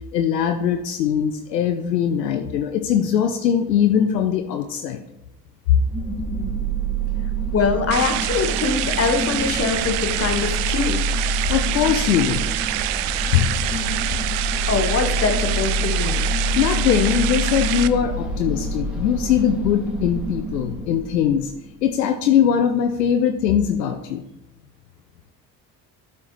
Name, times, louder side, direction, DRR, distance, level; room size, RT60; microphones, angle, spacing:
voice 1, 0.1-5.0 5.7-5.8 11.5-12.4 13.3-13.5 16.6-21.5 21.8-24.3, left 9 dB, 75° left, 6 dB, 0.6 m, -21 dB
sound 1, 5.9-21.8, right 1 dB, ahead, 1.7 m, -27 dB
voice 2, 7.5-11.0 14.7-16.2, left 5 dB, 30° left, 6 dB, 1.2 m, -23 dB
sound 2, 7.9-17.9, right 15 dB, 50° right, 0.5 m, -26 dB
12.0 x 4.4 x 3.1 m, 0.88 s
figure-of-eight pair, 50°, 49 cm